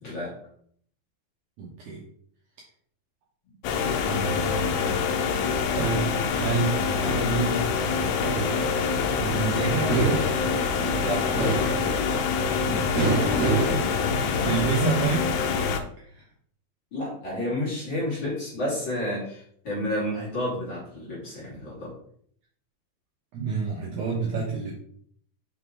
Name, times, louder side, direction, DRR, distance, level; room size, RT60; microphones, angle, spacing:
voice 1, 0.0-0.3 11.0-11.6 16.9-21.9, left 1 dB, 35° left, -7 dB, 2.9 m, -30 dB
voice 2, 1.6-2.0 4.0-4.7 5.8-8.5 9.2-10.2 12.7-13.9 14.2-15.3 16.0-16.3 23.3-24.7, right 4 dB, 70° right, -3 dB, 2.0 m, -29 dB
sound 1, 3.6-15.8, left 6 dB, 90° left, 2.7 m, -26 dB
sound 2, 8.2-14.7, right 2 dB, 40° right, 1.4 m, -29 dB
6.1 x 5.4 x 3.7 m, 0.63 s
omnidirectional pair, 4.6 m